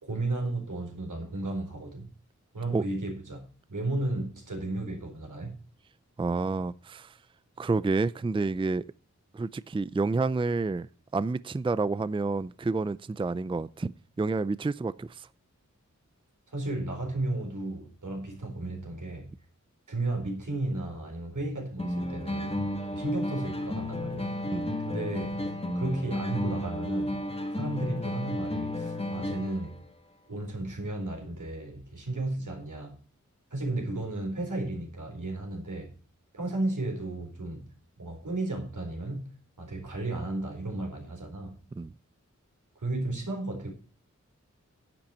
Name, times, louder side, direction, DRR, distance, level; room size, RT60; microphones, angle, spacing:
voice 1, 0.0-2.1 2.5-5.6 16.5-19.3 19.9-24.4 24.8-27.2 27.5-29.8 30.3-33.0 33.5-35.9 36.3-37.7 38.0-39.3 39.6-41.6 42.8-43.7, right 2 dB, 85° right, 4.2 m, -34 dB
voice 2, 6.2-7.1 7.6-8.9 9.3-13.9 14.2-15.3 24.5-24.8 41.8-41.9, right 3 dB, 15° right, 0.4 m, -29 dB
sound 1, 21.8-29.8, left 1 dB, 20° left, 1.8 m, -32 dB
10.5 x 8.8 x 4.4 m
wide cardioid pair, 60°, 30 cm